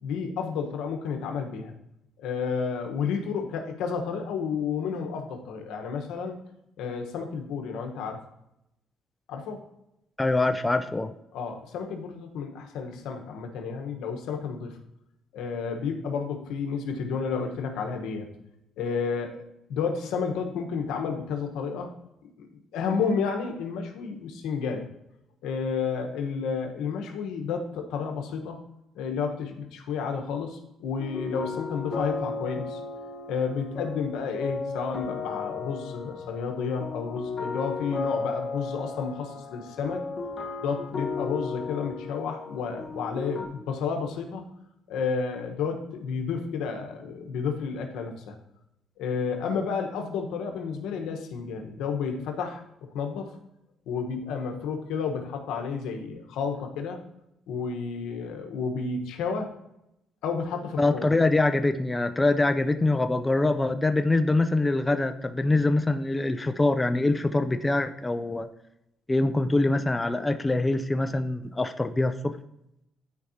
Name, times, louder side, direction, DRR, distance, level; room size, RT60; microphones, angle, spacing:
voice 1, 0.0-1.7 2.2-6.4 6.8-8.2 9.3-9.6 11.3-14.8 15.3-18.3 18.8-19.4 19.7-21.9 22.4-24.9 25.4-28.6 28.9-32.8 33.3-40.0 40.6-44.5 44.9-48.4 49.0-52.6 52.9-53.4 53.9-57.0 57.5-59.5 60.2-61.1, left 5 dB, 85° left, 4 dB, 1.1 m, -31 dB
voice 2, 10.2-11.1 60.8-68.5 69.1-72.4, left 2 dB, 15° left, 8 dB, 0.4 m, -24 dB
sound 1, 31.0-43.4, left 4 dB, 35° left, 1.2 m, -35 dB
12.5 x 4.7 x 2.8 m, 0.83 s
cardioid pair, 120°, 0 cm